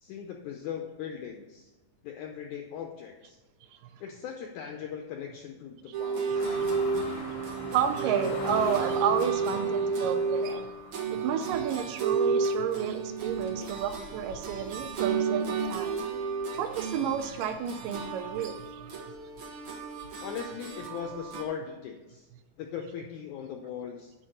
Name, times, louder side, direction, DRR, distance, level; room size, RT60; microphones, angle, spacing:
voice 1, 0.0-1.7 2.0-3.4 4.0-6.6 20.2-22.3 22.6-24.1, left 8 dB, 80° left, 3 dB, 1.8 m, -39 dB
sound 1, 5.9-21.4, right 5 dB, 60° right, 1.3 m, -32 dB
sound 2, 6.3-15.5 15.9-16.0 16.4-18.1, left 3 dB, 65° left, 1.2 m, -42 dB
voice 2, 7.7-10.7 11.1-16.0 16.6-18.9, right 8 dB, 80° right, 8 dB, 2.1 m, -31 dB
10.0 x 4.5 x 7.8 m, 1.1 s
omnidirectional pair, 4.3 m